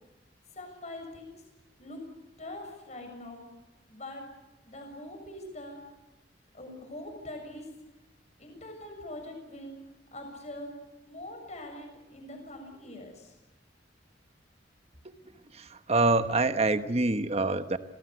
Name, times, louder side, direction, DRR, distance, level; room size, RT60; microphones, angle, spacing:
voice 1, 0.5-1.4 1.8-2.0 2.4-3.5 3.9-4.2 4.6-5.8 6.5-7.7 8.4-9.8 10.1-10.7 11.0-13.4, left 1 dB, 35° left, 4 dB, 7.1 m, -43 dB
voice 2, 15.5-17.8, right 2 dB, 35° right, 10 dB, 1.2 m, -26 dB
26.5 x 19.5 x 8.3 m, 1.0 s
head